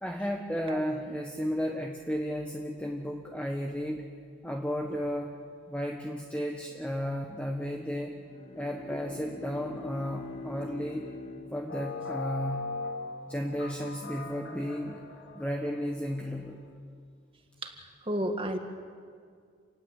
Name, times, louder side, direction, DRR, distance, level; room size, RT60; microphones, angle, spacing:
voice 1, 0.0-4.1 4.4-5.4 5.7-8.2 8.5-11.1 11.5-12.7 13.3-15.0 15.3-16.6, equal, 5° left, 1 dB, 1.4 m, -33 dB
Bowed string instrument, 8.1-12.5, left 2 dB, 30° left, 2.2 m, -44 dB
sound 1, 11.7-16.2, left 3 dB, 60° left, 4.1 m, -39 dB
voice 2, 18.0-18.6, right 1 dB, 25° right, 5 dB, 2.1 m, -31 dB
29.5 x 19.0 x 8.4 m, 2.1 s
head